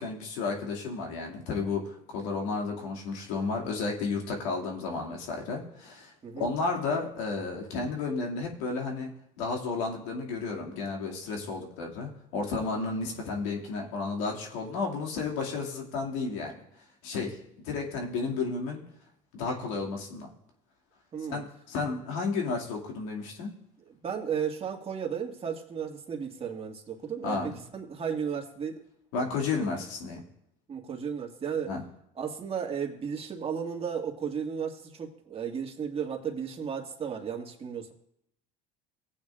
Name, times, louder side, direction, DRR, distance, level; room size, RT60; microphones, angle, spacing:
voice 1, 0.0-16.6 17.0-18.8 19.3-20.3 21.3-23.6 27.2-27.6 29.1-30.2 31.7-31.8, left 4 dB, 85° left, 0 dB, 2.3 m, -32 dB
voice 2, 21.1-21.4 23.9-28.8 30.7-31.7 32.2-37.9, right 7 dB, 35° right, 1 dB, 2.0 m, -34 dB
17.5 x 8.8 x 2.5 m, 0.75 s
supercardioid pair, 85°, 17 cm